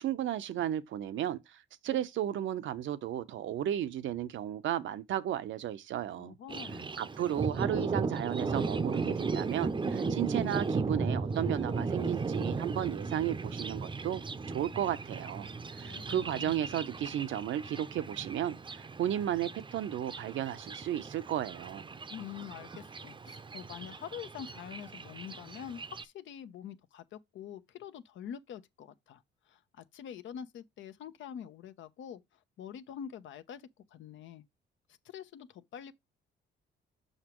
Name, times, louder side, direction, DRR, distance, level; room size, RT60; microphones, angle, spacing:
voice 1, 0.0-6.3 7.0-14.2 14.5-15.5 15.8-21.8, right 11 dB, 75° right, 0.7 m, -34 dB
voice 2, 6.2-6.9 15.8-16.6 22.1-29.2 29.5-32.2 32.6-33.6 33.9-34.4 35.0-35.9, left 9 dB, 75° left, 0.8 m, -45 dB
Thunder, 6.5-26.0, right 4 dB, 25° right, 0.6 m, -36 dB
6.5 x 5.9 x 3.0 m
cardioid pair, 90°, 20 cm